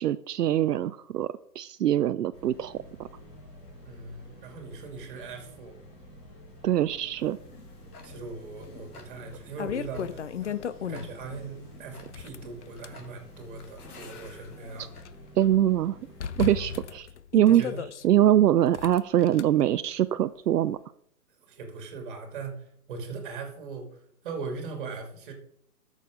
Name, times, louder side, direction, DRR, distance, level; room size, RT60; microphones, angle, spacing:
voice 1, 0.0-3.1 6.6-7.4 15.4-16.0 16.4-17.1 17.3-17.6 18.0-20.8, right 11 dB, 75° right, 12 dB, 0.6 m, -23 dB
sound 1, 2.3-16.5, equal, 15° left, 1.8 m, -49 dB
voice 2, 3.8-5.8 8.0-10.6 10.8-14.9 16.4-16.7 17.5-17.8 21.5-25.3, right 4 dB, 30° right, 4 dB, 2.4 m, -40 dB
Tick-tock, 7.2-15.0, left 4 dB, 70° left, 2.4 m, -53 dB
sound 2, 8.6-8.7 9.2-11.3 12.0-13.0 13.7-15.1 15.4-15.5 16.2-18.0 18.7-19.4, left 8 dB, 50° left, 0.6 m, -35 dB
12.5 x 6.5 x 5.0 m, 0.68 s
hypercardioid pair, 165°, 47 cm